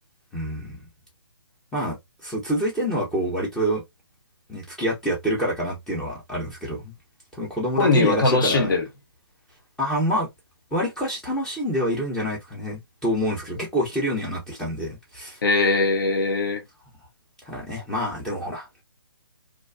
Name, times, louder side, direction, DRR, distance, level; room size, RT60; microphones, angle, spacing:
voice 1, 0.3-0.8 1.7-2.0 2.2-3.8 4.5-6.9 7.4-8.7 9.8-10.3 10.7-15.4 17.5-18.8, equal, 5° left, 0.7 m, -27 dB
voice 2, 7.8-8.8 15.4-16.6, left 3 dB, 50° left, 0.8 m, -20 dB
2.5 x 2.2 x 2.3 m
hypercardioid pair, 155°, 14 cm